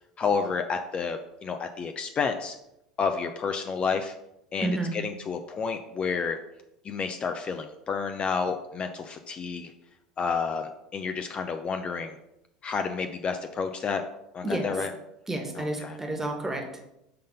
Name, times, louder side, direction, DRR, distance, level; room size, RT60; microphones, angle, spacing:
voice 1, 0.2-2.6 3.0-4.1 4.5-6.4 6.8-9.7 10.2-12.2 12.6-14.0 14.3-14.9 15.6-16.0, left 5 dB, 35° left, 6 dB, 0.5 m, -30 dB
voice 2, 4.6-4.9 14.4-14.7 15.3-16.9, right 2 dB, 10° right, 3 dB, 1.4 m, -30 dB
5.6 x 3.9 x 5.2 m, 0.84 s
hypercardioid pair, 75°, 3 cm